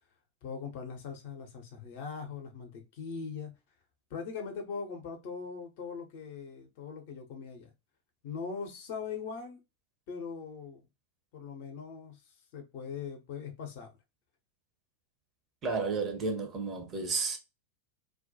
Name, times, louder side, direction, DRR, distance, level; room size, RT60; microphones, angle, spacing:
voice 1, 0.4-3.5 4.1-7.7 8.2-9.6 10.1-10.8 11.3-12.2 12.5-13.9, left 5 dB, 50° left, 0.6 m, -40 dB
voice 2, 15.6-17.4, right 4 dB, 25° right, 0.6 m, -32 dB
2.2 x 2.1 x 2.6 m
figure-of-eight pair, 90°, 0 cm